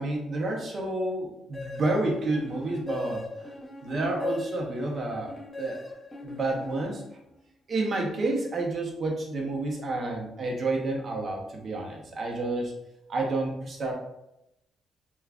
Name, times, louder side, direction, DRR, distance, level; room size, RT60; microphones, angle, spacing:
voice 1, 0.0-3.5 3.8-5.8 6.2-7.0 7.7-12.7 13.1-13.9, right 2 dB, 50° right, 1 dB, 0.7 m, -30 dB
sound 1, 1.5-7.4, left 1 dB, ahead, 0.9 m, -38 dB
3.4 x 2.3 x 2.4 m, 0.85 s
cardioid pair, 90°, 0 cm